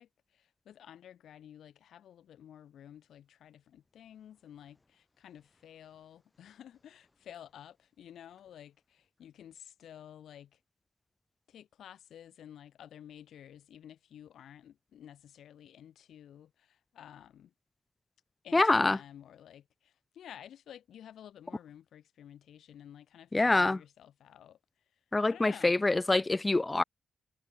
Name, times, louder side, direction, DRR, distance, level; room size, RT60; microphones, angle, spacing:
voice 1, 0.0-10.6 11.5-17.5 18.4-24.6 25.3-25.9, left 10 dB, 90° left, 7.9 m, -52 dB
voice 2, 18.5-19.0 23.3-23.8 25.1-26.8, left 2 dB, 20° left, 1.2 m, -25 dB
cardioid pair, 90°, 0 cm